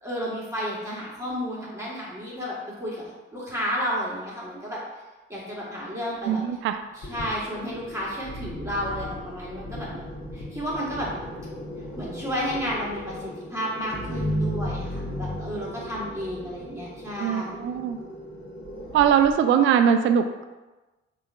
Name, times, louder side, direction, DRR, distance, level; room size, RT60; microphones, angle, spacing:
voice 1, 0.0-4.8 5.3-6.4 6.9-10.0 10.3-11.1 12.0-17.7, equal, 10° right, -7 dB, 1.4 m, -32 dB
voice 2, 6.3-6.8 17.2-18.0 18.9-20.4, right 8 dB, 40° right, 8 dB, 0.4 m, -21 dB
sound 1, 7.0-19.3, equal, 40° left, 1.1 m, -35 dB
3.5 x 2.5 x 4.2 m, 1.1 s
figure-of-eight pair, 45°, 31 cm